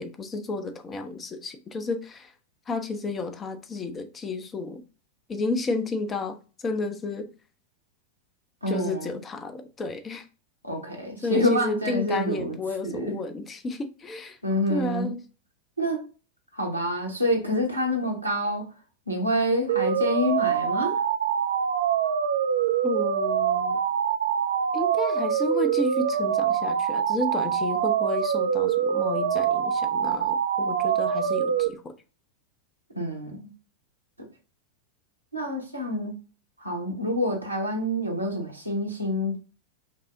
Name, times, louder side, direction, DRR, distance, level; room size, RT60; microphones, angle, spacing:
voice 1, 0.0-2.3 2.7-4.8 5.3-7.3 8.7-10.3 11.2-14.4 14.7-15.2 22.8-23.8 24.7-32.0, left 3 dB, 20° left, 0.5 m, -32 dB
voice 2, 8.6-9.2 10.6-12.6 12.8-13.1 14.4-15.1 15.8-16.1 16.5-18.7 19.1-21.0 32.9-33.4 34.2-34.3 35.3-36.1 36.6-39.4, equal, 85° right, 1.0 m, -27 dB
sound 1, 19.7-31.7, right 8 dB, 60° right, 0.4 m, -25 dB
5.1 x 2.0 x 2.5 m
figure-of-eight pair, 90°, 0 cm